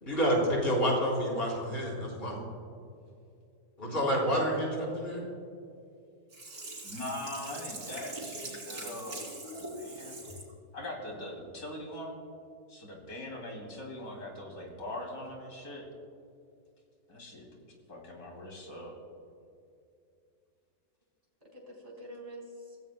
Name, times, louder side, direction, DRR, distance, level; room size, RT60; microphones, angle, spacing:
voice 1, 0.0-2.4 3.8-5.2, equal, 35° left, -3 dB, 4.0 m, -29 dB
Sink (filling or washing), 6.3-10.5 10.9-11.0, right 2 dB, 75° right, 3.7 m, -43 dB
voice 2, 6.8-10.1 10.7-12.1 12.7-15.9 17.1-17.5 17.9-19.0, left 1 dB, 70° left, 0 dB, 3.3 m, -41 dB
voice 3, 8.1-9.9 21.4-22.8, equal, 25° right, -3 dB, 3.9 m, -47 dB
25.0 x 16.5 x 2.2 m, 2.5 s
omnidirectional pair, 1.6 m